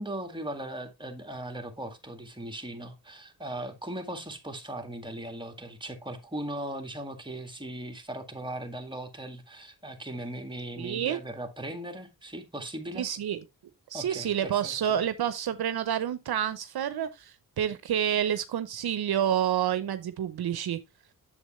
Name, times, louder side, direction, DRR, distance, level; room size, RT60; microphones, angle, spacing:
voice 1, 0.0-13.1 13.9-15.0, right 1 dB, 10° right, 2.0 m, -38 dB
voice 2, 10.8-11.2 13.0-13.4 13.9-20.8, right 10 dB, 70° right, 0.7 m, -29 dB
7.9 x 7.1 x 3.1 m
cardioid pair, 65°, 39 cm